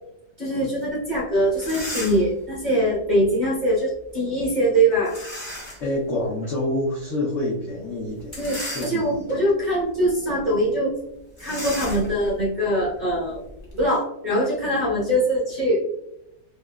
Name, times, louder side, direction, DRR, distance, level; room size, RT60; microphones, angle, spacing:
voice 1, 0.4-5.2 8.4-11.0 11.4-13.4 13.7-15.8, right 1 dB, 30° right, -6 dB, 0.9 m, -22 dB
sound 1, 1.1-1.2 1.5-2.4 5.0-5.9 6.4-6.5 8.2-9.3 9.9-10.1 10.4-10.5 11.4-13.8, left 1 dB, 30° left, 0.6 m, -35 dB
voice 2, 5.8-8.4 8.7-9.3, left 1 dB, 70° left, -4 dB, 0.7 m, -27 dB
3.4 x 2.8 x 2.2 m, 0.82 s
omnidirectional pair, 2.0 m